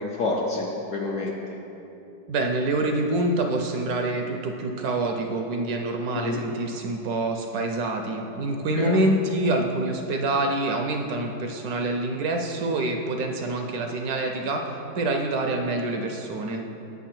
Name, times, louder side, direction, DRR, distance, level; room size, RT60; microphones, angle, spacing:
voice 1, 0.0-1.6 6.1-6.4 8.7-9.0, left 3 dB, 65° left, -2 dB, 0.8 m, -28 dB
voice 2, 2.3-16.6, right 2 dB, 70° right, 3 dB, 0.9 m, -26 dB
8.2 x 3.6 x 5.8 m, 2.9 s
omnidirectional pair, 1.9 m